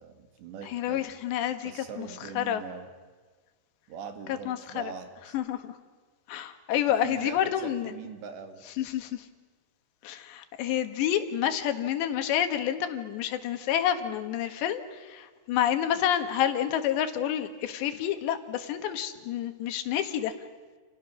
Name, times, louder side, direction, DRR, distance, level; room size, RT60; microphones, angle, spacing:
voice 1, 0.0-1.0 1.6-2.9 3.9-5.4 7.0-8.6, right 6 dB, 90° right, 6 dB, 4.4 m, -42 dB
voice 2, 0.7-2.1 2.4-2.6 4.5-4.9 5.3-5.7 6.3-7.9 8.8-9.3 10.0-20.3, left 10 dB, 90° left, 8 dB, 3.7 m, -29 dB
30.0 x 29.5 x 6.3 m, 1.4 s
omnidirectional pair, 4.9 m